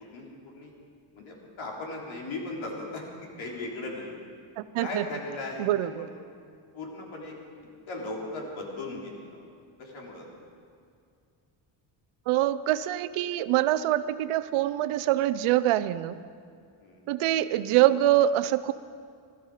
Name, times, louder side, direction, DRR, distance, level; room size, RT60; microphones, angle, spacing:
voice 1, 1.1-3.0 3.4-4.2 4.8-6.1 6.7-7.3 7.9-9.4 9.8-10.2 16.8-17.0, left 2 dB, 70° left, -2 dB, 3.7 m, -37 dB
voice 2, 4.6-5.1 5.6-6.1 12.3-16.2 17.1-18.7, right 13 dB, 85° right, 14 dB, 0.7 m, -24 dB
20.0 x 13.5 x 5.0 m, 2.3 s
cardioid pair, 125°, 49 cm